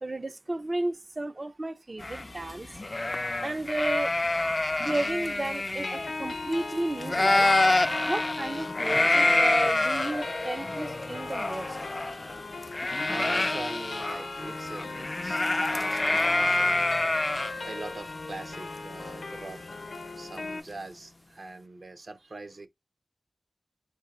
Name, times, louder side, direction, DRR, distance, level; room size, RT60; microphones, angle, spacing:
voice 1, 0.0-2.7 3.4-4.2 4.8-7.5 8.1-11.8, right 2 dB, 40° right, 0.4 m, -33 dB
sound 1, 2.0-6.7 7.0-19.9, left 2 dB, 35° left, 0.3 m, -27 dB
sound 2, 5.8-20.6, left 3 dB, 75° left, 0.7 m, -38 dB
voice 2, 13.0-16.8 17.2-17.3 17.6-19.6 20.2-22.7, right 2 dB, 65° right, 0.8 m, -42 dB
4.0 x 2.7 x 3.6 m
wide cardioid pair, 65°, 0 cm